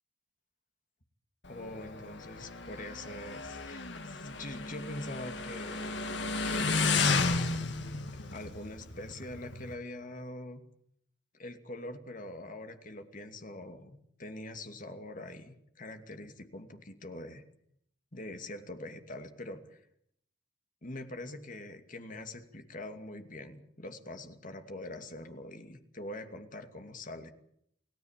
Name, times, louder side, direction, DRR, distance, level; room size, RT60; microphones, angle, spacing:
Motorcycle, 1.4-9.7, left 4 dB, 60° left, 2.1 m, -33 dB
voice 1, 1.5-5.9 6.5-7.6 8.3-10.6 11.4-17.4 18.1-19.8 20.8-27.3, left 1 dB, 45° left, 7 dB, 2.6 m, -44 dB
29.0 x 17.5 x 7.5 m, 0.70 s
head